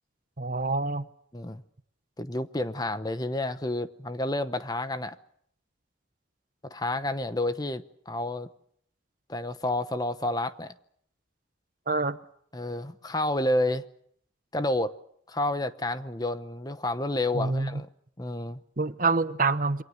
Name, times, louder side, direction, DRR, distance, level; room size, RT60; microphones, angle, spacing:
voice 1, 0.4-1.1 11.9-12.2 17.3-17.8 18.8-19.8, right 3 dB, 45° right, 0.9 m, -26 dB
voice 2, 2.2-5.2 6.6-8.5 9.3-10.7 12.5-13.8 14.5-14.9 15.3-17.9 18.2-18.6, left 1 dB, 20° left, 0.9 m, -30 dB
28.0 x 24.0 x 6.5 m
head